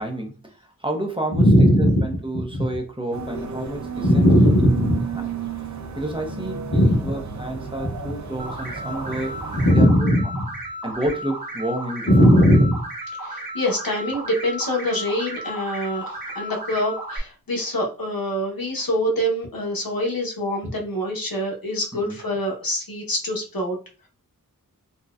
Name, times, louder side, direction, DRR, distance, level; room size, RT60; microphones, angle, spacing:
voice 1, 0.0-4.3 5.2-5.3 5.6-5.7 6.0-10.1 10.8-12.3 21.9-22.2, right 1 dB, 15° right, 2 dB, 0.7 m, -30 dB
voice 2, 1.3-2.0 2.3-2.6 4.0-5.0 6.7-7.0 9.5-10.5 12.1-12.8 13.2-23.8, equal, 75° left, -1 dB, 1.0 m, -21 dB
sound 1, 3.1-9.7, right 6 dB, 55° right, 0.5 m, -32 dB
sound 2, 8.4-17.2, right 1 dB, 75° right, 1.2 m, -34 dB
4.0 x 2.2 x 2.4 m, 0.35 s
wide cardioid pair, 55°, 35 cm